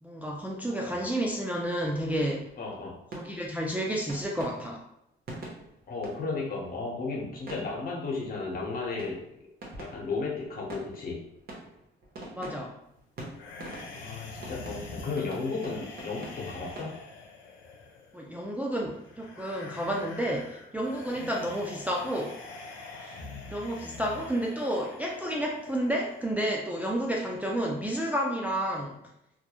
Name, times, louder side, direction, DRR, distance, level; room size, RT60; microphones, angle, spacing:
voice 1, 0.0-2.5 3.1-4.8 12.3-12.7 18.1-22.4 23.0-23.2 23.5-29.0, right 1 dB, 10° right, -2 dB, 0.3 m, -31 dB
sound 1, 2.2-2.8 3.1-6.9 7.4-8.2 8.6-16.9, right 2 dB, 50° right, 0.8 m, -46 dB
voice 2, 2.6-3.0 5.9-9.2 9.8-11.2 13.9-17.0, left 4 dB, 50° left, -3 dB, 0.9 m, -34 dB
sound 2, 13.3-26.3, left 3 dB, 90° left, 0.5 m, -45 dB
2.3 x 2.0 x 2.9 m, 0.79 s
cardioid pair, 90°, 20 cm